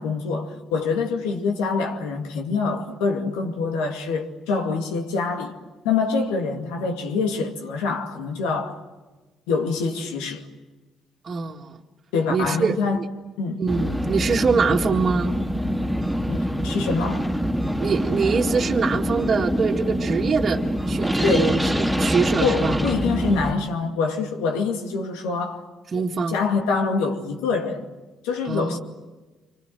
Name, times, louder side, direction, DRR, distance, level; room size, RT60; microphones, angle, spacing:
voice 1, 0.0-5.6 5.8-8.8 9.5-10.5 12.1-13.0 13.4-13.6 16.3-17.3 21.2-21.6 22.4-25.6 25.9-27.9 28.2-28.8, left 4 dB, 85° left, 2.4 m, -25 dB
voice 2, 11.2-11.8 12.3-13.1 13.6-15.3 17.8-22.8 25.9-26.4 28.5-28.8, right 5 dB, 50° right, 1.9 m, -24 dB
sound 1, 13.7-23.5, equal, ahead, 2.6 m, -25 dB
28.0 x 25.5 x 7.8 m
supercardioid pair, 65°, 0 cm